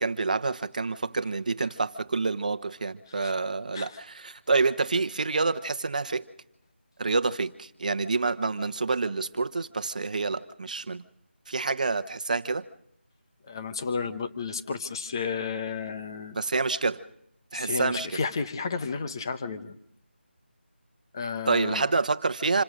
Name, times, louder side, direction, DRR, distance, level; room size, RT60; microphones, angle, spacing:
voice 1, 0.0-6.2 7.0-11.0 11.5-12.7 16.3-17.0 17.5-18.2 21.4-22.6, right 3 dB, 40° right, 12 dB, 1.1 m, -27 dB
voice 2, 13.5-16.4 17.5-19.8 21.1-21.8, left 5 dB, 20° left, 9 dB, 1.1 m, -32 dB
27.5 x 22.5 x 5.2 m, 0.70 s
figure-of-eight pair, 170°, 6 cm